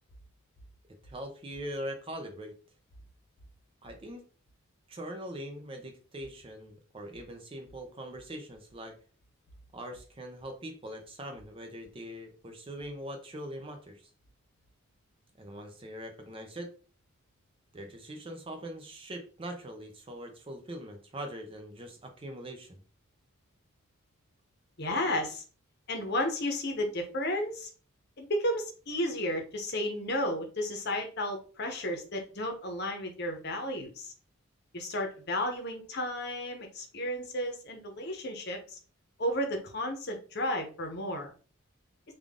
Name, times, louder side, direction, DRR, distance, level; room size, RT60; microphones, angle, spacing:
voice 1, 1.0-2.5 3.8-4.2 4.9-8.9 9.7-14.1 15.4-16.7 17.7-22.8, right 1 dB, 25° right, 5 dB, 0.5 m, -42 dB
voice 2, 24.8-25.4 25.9-27.7 28.2-34.1 34.7-38.8 39.2-41.3, left 1 dB, 50° left, 4 dB, 0.8 m, -33 dB
3.5 x 2.4 x 3.6 m, 0.38 s
head